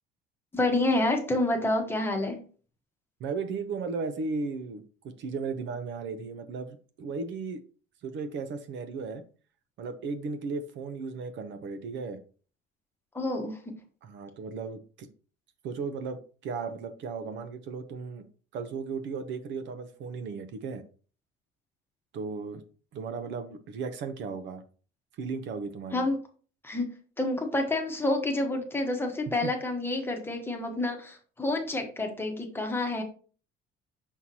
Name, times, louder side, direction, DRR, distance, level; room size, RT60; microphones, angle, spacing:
voice 1, 0.5-2.5 13.1-13.8 25.9-26.1 26.6-33.0, left 2 dB, 10° left, 3 dB, 1.1 m, -28 dB
voice 2, 3.2-7.6 8.0-9.2 9.8-12.2 14.0-15.1 15.6-18.3 18.5-20.8 22.1-22.6 22.9-24.6 25.2-26.1 29.4-29.5, right 4 dB, 60° right, 9 dB, 0.8 m, -35 dB
6.3 x 5.7 x 2.8 m, 0.39 s
cardioid pair, 165°, 21 cm